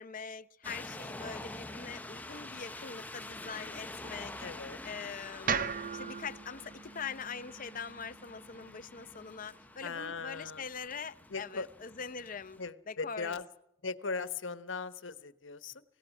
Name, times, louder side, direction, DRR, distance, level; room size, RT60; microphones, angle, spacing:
voice 1, 0.0-4.3 4.8-12.6 12.9-13.4, left 6 dB, 45° left, 0.7 m, -43 dB
sound 1, 0.6-12.7, left 2 dB, 10° left, 0.8 m, -47 dB
voice 2, 4.4-4.8 9.8-10.6 11.3-11.7 12.6-13.5 13.8-15.8, left 4 dB, 85° left, 1.2 m, -39 dB
sound 2, 5.5-9.6, right 6 dB, 45° right, 0.8 m, -39 dB
27.0 x 17.0 x 6.1 m
head